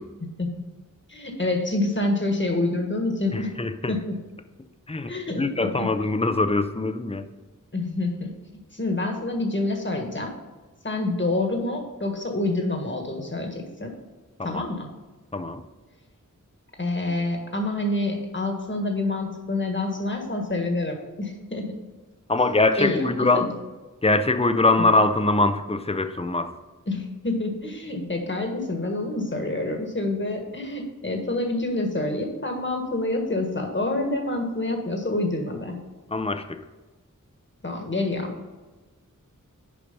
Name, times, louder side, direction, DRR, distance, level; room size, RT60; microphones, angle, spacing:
voice 1, 1.1-3.6 3.9-4.1 5.1-5.9 7.7-8.3 8.7-10.3 10.8-13.9 14.4-14.9 16.8-21.7 22.8-23.5 24.8-24.9 26.9-35.8 37.6-38.4, left 2 dB, 35° left, 3 dB, 1.6 m, -27 dB
voice 2, 3.3-4.0 4.9-5.1 5.4-7.3 14.4-14.7 15.3-15.6 22.3-23.5 24.0-26.5 36.1-36.6, left 2 dB, 20° left, 9 dB, 0.6 m, -23 dB
7.0 x 5.0 x 5.3 m, 1.2 s
wide cardioid pair, 55°, 32 cm